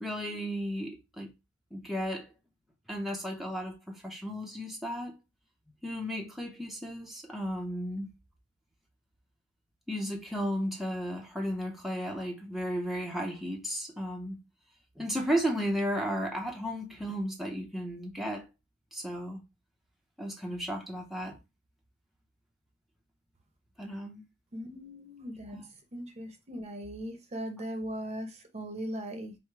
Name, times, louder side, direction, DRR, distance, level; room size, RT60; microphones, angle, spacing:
voice 1, 0.0-1.3 1.7-2.3 2.9-5.2 5.8-8.1 9.9-14.4 15.0-18.5 18.9-19.4 20.2-21.4 23.8-24.2 25.5-25.6, equal, ahead, 0.6 m, -34 dB
voice 2, 24.5-25.6 25.9-29.3, equal, 35° right, 0.7 m, -39 dB
4.8 x 2.1 x 4.5 m
head